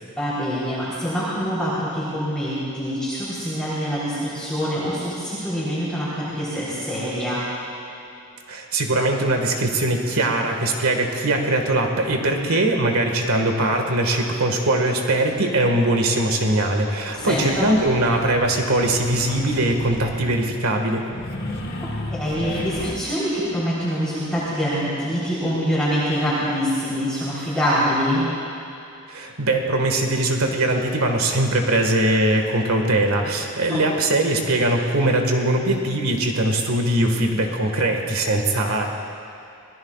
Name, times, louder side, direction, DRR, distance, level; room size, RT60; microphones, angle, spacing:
voice 1, 0.2-7.5 17.2-17.7 22.1-28.3 33.7-33.8, equal, 5° left, -11 dB, 3.6 m, -25 dB
voice 2, 8.5-21.0 29.1-38.8, right 1 dB, 80° right, 3 dB, 1.8 m, -21 dB
sound 1, 17.2-20.4 21.0-22.9, left 1 dB, 50° left, 1.6 m, -33 dB
26.5 x 19.0 x 2.4 m, 2.8 s
head